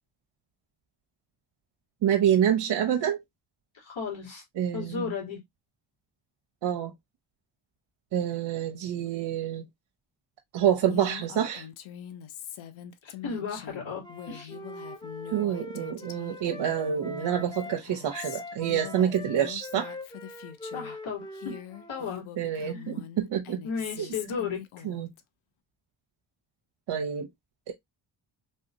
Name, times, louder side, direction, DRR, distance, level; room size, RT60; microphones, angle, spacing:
voice 1, 2.0-3.2 4.6-5.1 6.6-6.9 8.1-9.6 10.5-11.7 15.3-19.9 22.4-23.6 24.0-24.1 24.8-25.1 26.9-27.3 27.7-27.8, right 9 dB, 65° right, 0.7 m, -27 dB
voice 2, 3.8-4.4 4.7-5.4 13.0-14.6 20.7-21.6 21.9-22.9 23.6-24.6, left 6 dB, 70° left, 2.1 m, -35 dB
Female speech woman speaking, 10.9-21.0 21.3-25.2, left 10 dB, 90° left, 0.6 m, -43 dB
Wind instrument woodwind instrument, 14.0-17.8 18.1-22.2, left 1 dB, 10° left, 0.6 m, -43 dB
3.3 x 2.7 x 2.5 m
cardioid pair, 85°, 47 cm